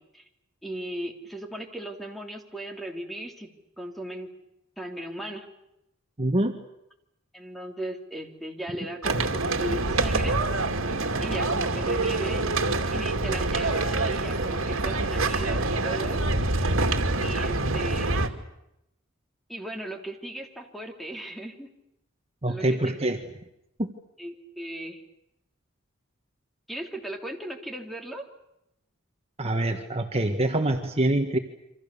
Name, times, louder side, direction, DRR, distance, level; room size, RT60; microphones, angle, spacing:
voice 1, 0.6-3.5 3.8-4.3 4.8-5.4 7.3-9.3 9.6-10.3 11.2-12.6 12.9-16.2 17.2-18.1 19.5-21.7 22.5-22.9 24.2-25.0 26.7-28.3, right 1 dB, ahead, 3 dB, 3.4 m, -37 dB
voice 2, 6.2-6.6 22.4-23.2 23.8-23.9 29.4-31.4, right 1 dB, 30° right, 4 dB, 1.6 m, -25 dB
sound 1, 9.0-18.3, right 2 dB, 80° right, 2.5 m, -26 dB
28.5 x 26.0 x 7.0 m, 0.84 s
head